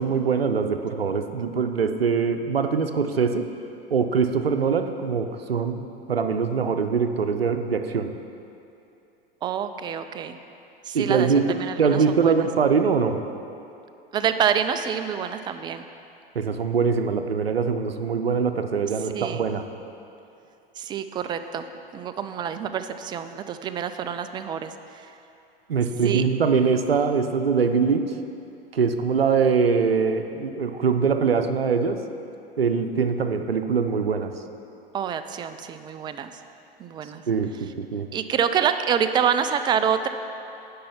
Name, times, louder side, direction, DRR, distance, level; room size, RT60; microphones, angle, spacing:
voice 1, 0.0-3.5 3.9-8.1 10.9-13.2 16.3-19.6 25.7-28.2 28.7-32.0 32.6-34.3 37.3-38.1, right 5 dB, 85° right, 7 dB, 0.6 m, -23 dB
voice 2, 9.4-10.4 10.8-12.3 14.1-15.8 19.1-19.5 20.8-21.6 21.9-25.1 26.0-26.2 34.9-36.3 36.8-37.2 38.1-40.1, right 8 dB, 15° right, 9 dB, 0.3 m, -27 dB
10.0 x 5.5 x 5.8 m, 2.7 s
figure-of-eight pair, 85°, 29 cm